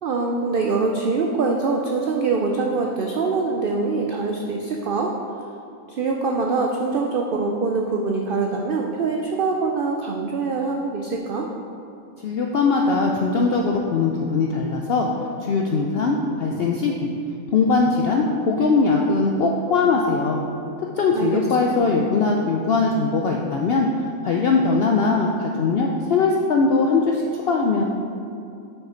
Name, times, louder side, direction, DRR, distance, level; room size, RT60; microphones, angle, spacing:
voice 1, 0.0-5.1 5.9-11.5 21.1-21.8, right 4 dB, 90° right, 1 dB, 0.4 m, -24 dB
voice 2, 12.2-15.1 15.4-17.1 17.5-20.4 21.0-23.9 24.2-27.8, left 4 dB, 75° left, 0 dB, 0.5 m, -20 dB
5.7 x 5.5 x 4.4 m, 2.6 s
omnidirectional pair, 1.5 m